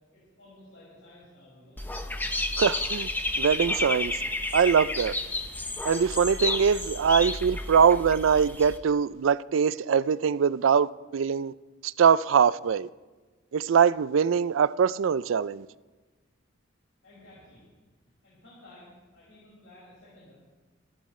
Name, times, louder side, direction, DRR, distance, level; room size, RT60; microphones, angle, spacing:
voice 1, 0.1-1.8 17.0-17.7 18.2-20.3, left 1 dB, 70° left, 5.7 m, -53 dB
Dog / Bird, 1.8-8.8, left 2 dB, 10° left, 0.8 m, -31 dB
voice 2, 2.6-3.1 3.4-4.2 4.5-5.1 5.8-11.5 11.8-12.9 13.5-15.7, right 7 dB, 80° right, 0.4 m, -23 dB
26.0 x 12.0 x 3.2 m
head